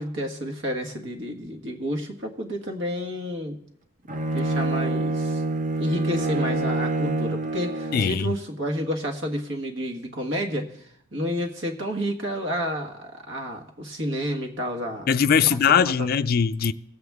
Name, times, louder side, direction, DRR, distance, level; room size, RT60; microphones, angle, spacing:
voice 1, 0.0-3.6 4.3-5.4 5.8-10.7 11.1-15.1 15.5-15.6 16.0-16.1, equal, 70° right, 1.5 m, -30 dB
Bowed string instrument, 4.1-8.3, right 2 dB, 40° right, 0.7 m, -26 dB
voice 2, 7.9-8.3 15.1-16.7, left 7 dB, 50° left, 0.4 m, -21 dB
19.0 x 7.9 x 3.5 m
head